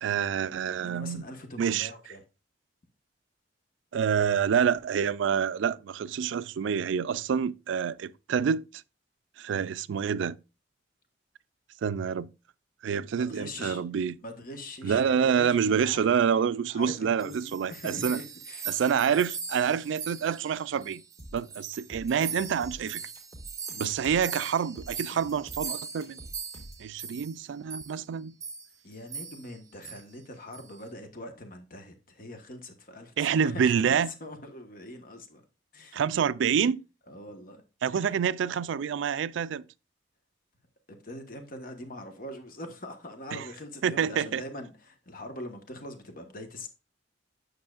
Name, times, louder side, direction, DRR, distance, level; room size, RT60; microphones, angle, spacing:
voice 1, 0.0-1.2 1.6-1.9 3.9-8.8 9.4-10.4 11.8-12.3 12.8-14.2 14.8-18.2 18.7-21.0 21.3-23.1 23.8-26.2 26.8-28.3 33.2-34.1 35.9-36.8 37.8-39.6 43.3-43.5 43.8-44.4, right 7 dB, 80° right, 0.3 m, -27 dB
voice 2, 0.8-2.2 13.2-13.8 14.2-16.1 16.7-18.7 28.8-35.4 35.7-36.0 37.1-37.6 37.9-38.2 40.9-46.7, left 1 dB, 50° left, 1.2 m, -43 dB
sound 1, 16.9-21.2 21.5-27.4 27.7-27.9 28.4-28.7 29.1-29.5 29.8-30.0 30.5-30.8, right 6 dB, 20° right, 0.6 m, -40 dB
sound 2, 21.2-26.9, equal, 15° left, 1.9 m, -47 dB
8.7 x 6.5 x 2.4 m
head